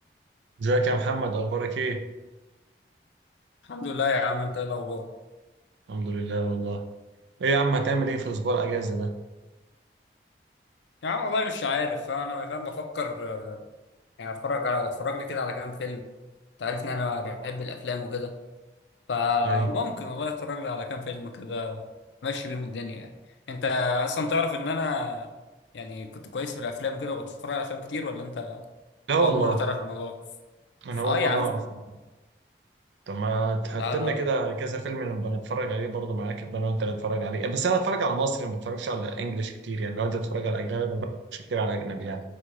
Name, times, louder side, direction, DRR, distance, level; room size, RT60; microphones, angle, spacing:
voice 1, 0.6-2.0 5.9-6.8 7.4-9.1 19.4-19.7 29.1-29.6 30.8-31.5 33.1-41.1 41.5-42.2, right 3 dB, 85° right, 5 dB, 0.4 m, -27 dB
voice 2, 3.7-5.0 11.0-13.6 14.2-16.1 16.6-18.3 19.1-21.8 22.2-23.1 23.5-25.3 25.7-28.6 29.2-30.2 31.0-31.5 33.7-34.2, left 4 dB, 90° left, 6 dB, 0.5 m, -30 dB
4.2 x 2.3 x 4.6 m, 1.1 s
head